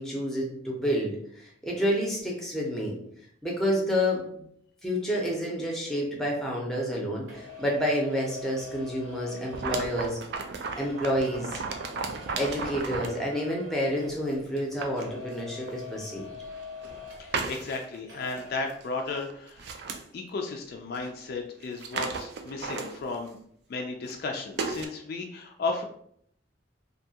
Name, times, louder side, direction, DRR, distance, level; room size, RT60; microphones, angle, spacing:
voice 1, 0.0-3.0 3.4-4.4 4.8-10.2 10.8-11.6 12.4-16.3, equal, ahead, -2 dB, 0.6 m, -29 dB
sound 1, 7.3-14.7 15.0-17.8 18.1-18.6, left 4 dB, 85° right, 0.9 m, -45 dB
sound 2, 9.5-13.2 14.0-14.1 14.6-15.0 15.7-15.8 16.5-17.0 17.3-18.0 18.3-18.4 18.7-18.9 19.2-20.0 20.9-21.0 21.3-21.4 21.6-23.3 24.0-24.2 24.6-24.9, right 4 dB, 60° right, 0.3 m, -34 dB
voice 2, 17.2-19.7 20.1-23.4 23.7-25.8, left 3 dB, 55° left, 3 dB, 0.3 m, -34 dB
2.6 x 2.3 x 2.7 m, 0.67 s
head